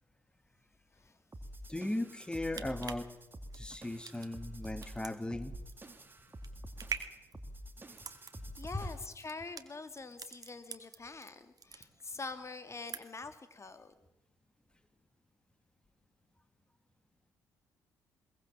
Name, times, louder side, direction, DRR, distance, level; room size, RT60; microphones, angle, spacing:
sound 1, 1.3-9.2, equal, 20° right, 2.4 m, -48 dB
voice 1, 1.7-3.1 3.5-5.5, left 1 dB, 10° left, 11 dB, 1.8 m, -37 dB
sound 2, 2.5-11.3 11.6-12.3 12.6-13.3 13.7-13.8, right 6 dB, 40° right, 1.9 m, -45 dB
voice 2, 8.6-13.9, left 3 dB, 30° left, 10 dB, 2.3 m, -45 dB
22.0 x 18.0 x 7.4 m, 0.96 s
hypercardioid pair, 45°, 9 cm